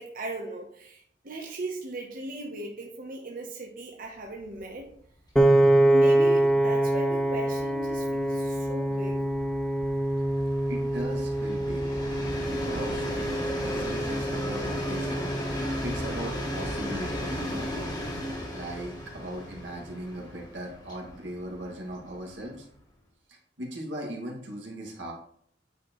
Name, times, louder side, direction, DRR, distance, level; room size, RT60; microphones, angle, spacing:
voice 1, 0.0-4.9 5.8-9.2, right 2 dB, 50° right, 0 dB, 0.9 m, -38 dB
Train, 4.5-4.7 5.0-5.1 5.4-22.8, equal, 25° left, 1.5 m, -36 dB
Piano, 5.4-17.6, right 1 dB, 5° left, 0.4 m, -26 dB
voice 2, 10.7-13.3 13.6-17.7 18.5-22.7 23.3-25.1, equal, 90° right, -1 dB, 2.0 m, -39 dB
9.1 x 4.6 x 3.0 m, 0.65 s
head